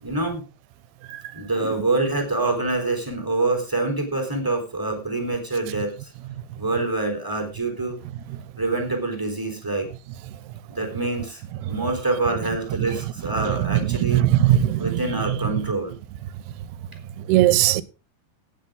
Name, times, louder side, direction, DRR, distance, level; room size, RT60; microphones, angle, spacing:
voice 1, 0.0-0.4 1.3-6.1 6.6-8.0 8.6-9.9 10.7-11.4 11.7-14.2 14.8-15.9, right 2 dB, 5° right, 3.1 m, -26 dB
voice 2, 14.1-14.8 17.3-17.8, right 13 dB, 85° right, 2.7 m, -17 dB
17.5 x 8.8 x 3.8 m
omnidirectional pair, 4.6 m